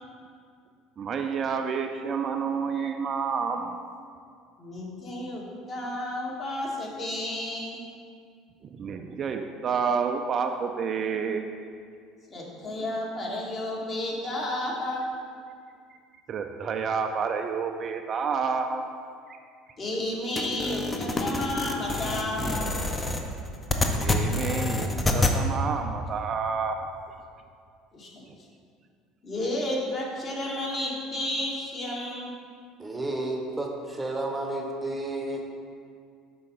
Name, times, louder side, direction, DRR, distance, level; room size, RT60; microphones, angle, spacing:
voice 1, 1.0-3.8 8.6-11.4 12.6-12.9 15.9-16.0 16.3-18.8 24.0-26.8 28.3-28.4, right 6 dB, 45° right, 5 dB, 0.4 m, -29 dB
voice 2, 4.6-7.9 12.3-15.0 19.8-22.8 27.9-28.1 29.2-32.3, left 1 dB, 40° left, -4 dB, 1.5 m, -32 dB
sound 1, 20.4-25.4, left 2 dB, 20° left, 0.6 m, -27 dB
voice 3, 32.8-35.4, right 2 dB, 15° right, 1 dB, 0.8 m, -31 dB
5.5 x 3.7 x 5.0 m, 2.2 s
hypercardioid pair, 70°, 0 cm